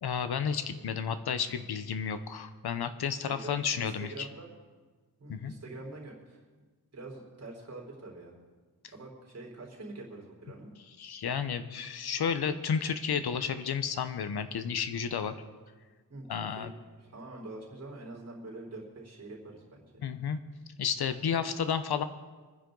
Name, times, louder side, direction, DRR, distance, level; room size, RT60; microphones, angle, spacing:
voice 1, 0.0-4.3 5.3-5.5 11.0-15.3 16.3-16.7 20.0-20.4 20.8-22.0, left 7 dB, 90° left, 10 dB, 0.9 m, -32 dB
voice 2, 3.2-4.5 5.2-6.4 6.9-8.3 8.9-10.7 16.1-16.7 17.0-20.0, right 2 dB, 40° right, -1 dB, 4.1 m, -45 dB
25.5 x 10.0 x 3.9 m, 1.4 s
wide cardioid pair, 170°, 37 cm